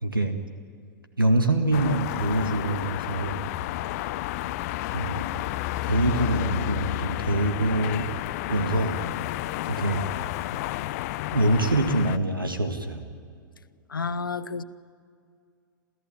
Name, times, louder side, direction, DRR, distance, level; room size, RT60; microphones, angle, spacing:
voice 1, 0.0-0.4 1.2-3.5 4.9-5.3 5.8-8.1 8.5-9.0 9.7-10.1 11.3-13.0, right 1 dB, 85° right, 1.8 m, -25 dB
sound 1, 1.7-12.2, left 16 dB, 45° left, 0.7 m, -31 dB
voice 2, 13.9-14.6, left 4 dB, 80° left, 0.9 m, -30 dB
28.0 x 15.0 x 9.3 m
figure-of-eight pair, 100°, 11 cm